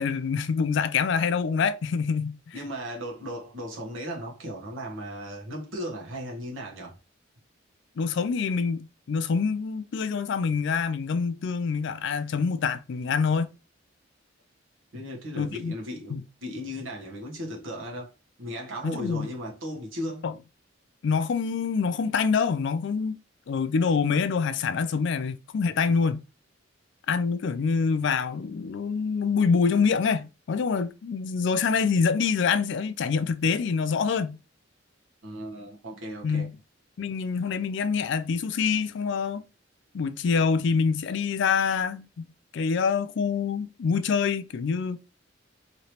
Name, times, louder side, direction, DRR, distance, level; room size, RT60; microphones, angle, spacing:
voice 1, 0.0-2.5 8.0-13.5 15.4-15.7 16.1-16.2 18.8-19.3 20.2-20.3 21.0-23.2 23.5-26.2 27.1-34.4 36.2-36.5 37.0-39.4 39.9-42.2 42.5-45.0, left 5 dB, 65° left, 0.4 m, -26 dB
voice 2, 2.5-7.0 14.9-18.1 18.4-20.3 35.2-36.5, equal, 85° right, 1.2 m, -36 dB
3.2 x 2.8 x 2.9 m
head